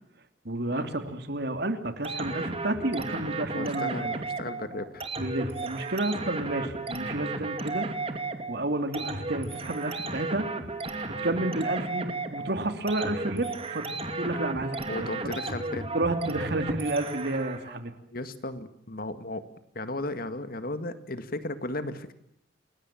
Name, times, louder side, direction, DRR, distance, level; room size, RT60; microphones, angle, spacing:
voice 1, 0.4-4.1 5.2-7.9 8.5-10.5 11.1-15.1 15.9-17.9, right 2 dB, 60° right, 8 dB, 2.9 m, -31 dB
sound 1, 2.0-17.8, right 3 dB, 30° right, 2.6 m, -34 dB
voice 2, 3.5-5.1 11.4-11.5 14.9-15.9 18.1-19.5 19.8-22.1, left 2 dB, 55° left, 11 dB, 2.0 m, -35 dB
29.0 x 21.5 x 7.6 m, 0.73 s
head